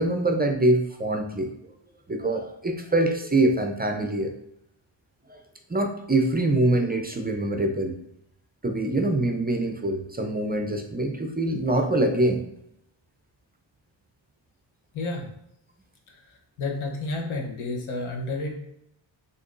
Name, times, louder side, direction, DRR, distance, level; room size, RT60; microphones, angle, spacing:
voice 1, 0.0-1.5 2.1-4.3 5.3-5.4 5.7-8.0 8.6-12.4, right 1 dB, 20° right, 4 dB, 0.4 m, -24 dB
voice 2, 14.9-15.3 16.1-16.2 16.6-18.5, left 2 dB, 90° left, 1 dB, 1.1 m, -30 dB
6.4 x 2.9 x 2.5 m, 0.77 s
wide cardioid pair, 110°, 47 cm